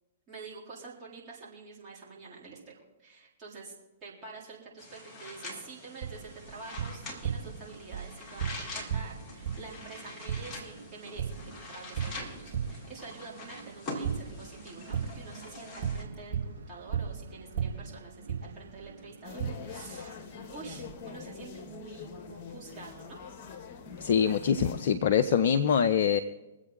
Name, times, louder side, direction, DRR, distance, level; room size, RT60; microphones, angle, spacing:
voice 1, 0.3-20.2 20.5-23.2, right 4 dB, 25° right, -5 dB, 3.7 m, -47 dB
sound 1, 4.8-16.0, left 2 dB, 15° left, 3.8 m, -44 dB
Tap, 6.0-20.9, right 7 dB, 45° right, 3.2 m, -38 dB
sound 2, 19.2-25.0, left 6 dB, 35° left, 1.9 m, -44 dB
voice 2, 24.0-26.2, left 7 dB, 50° left, 8 dB, 0.6 m, -24 dB
24.5 x 8.1 x 4.0 m, 1.1 s
figure-of-eight pair, 115°, 0 cm